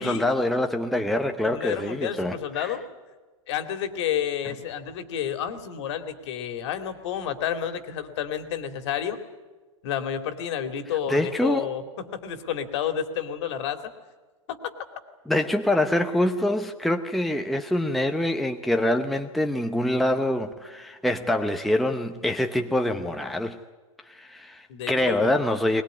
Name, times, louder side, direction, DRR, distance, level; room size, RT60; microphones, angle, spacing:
voice 1, 0.0-2.8 11.1-11.7 15.3-23.6 24.1-25.8, left 1 dB, ahead, 4 dB, 0.9 m, -25 dB
voice 2, 1.4-2.8 3.5-9.2 9.8-11.8 12.1-13.8 14.5-14.7 24.7-25.3, left 9 dB, 55° left, 8 dB, 2.6 m, -30 dB
21.0 x 20.5 x 9.5 m, 1.3 s
hypercardioid pair, 130°, 17 cm